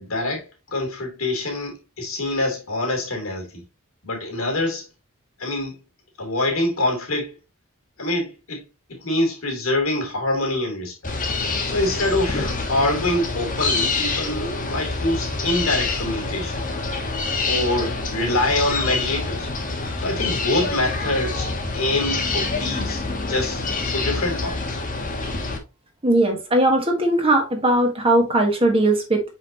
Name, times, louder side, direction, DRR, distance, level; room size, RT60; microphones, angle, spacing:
voice 1, 0.0-3.6 4.0-4.9 5.4-5.8 6.2-7.3 8.0-11.1 11.6-16.7 17.5-19.5 20.0-24.8, left 1 dB, 70° left, 2.8 m, -25 dB
sound 1, 11.0-25.6, left 3 dB, 40° left, 1.5 m, -26 dB
voice 2, 26.0-29.2, right 1 dB, 25° right, 1.3 m, -19 dB
6.1 x 5.5 x 2.8 m
head